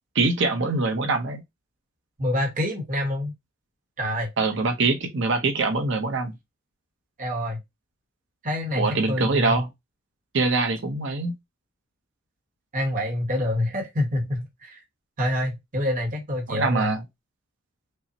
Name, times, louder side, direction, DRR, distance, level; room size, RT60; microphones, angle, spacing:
voice 1, 0.1-1.4 4.4-6.4 8.7-9.7 10.3-11.3 16.5-17.0, right 3 dB, 60° right, 0.8 m, -24 dB
voice 2, 2.2-3.3 4.0-4.3 7.2-7.6 8.4-9.6 12.7-14.8 15.2-16.9, left 1 dB, 40° right, 1.1 m, -27 dB
5.3 x 2.1 x 2.7 m
head